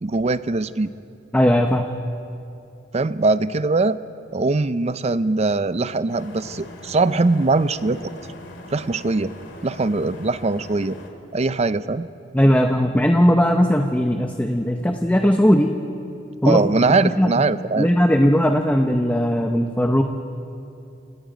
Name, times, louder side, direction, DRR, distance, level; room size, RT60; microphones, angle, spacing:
voice 1, 0.0-0.9 2.9-4.0 4.3-8.1 8.7-9.3 9.6-11.0 11.3-12.1 16.4-17.9, right 3 dB, 35° right, 14 dB, 0.5 m, -21 dB
voice 2, 1.3-1.9 12.3-15.7 16.4-16.6 17.0-17.3 17.8-20.0, equal, 10° left, 4 dB, 0.7 m, -18 dB
sound 1, 6.1-11.1, left 2 dB, 70° left, 2.6 m, -41 dB
29.0 x 18.0 x 5.2 m, 2.6 s
head